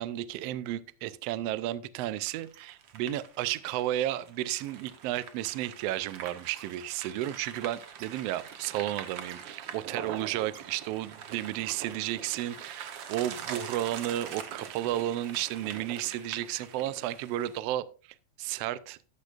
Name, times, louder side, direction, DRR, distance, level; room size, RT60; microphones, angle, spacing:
voice 1, 0.0-17.9 18.4-19.0, right 13 dB, 90° right, 16 dB, 1.4 m, -33 dB
sound 1, 2.1-17.6, right 7 dB, 65° right, 1.1 m, -43 dB
13.0 x 9.9 x 2.4 m, 0.36 s
omnidirectional pair, 3.5 m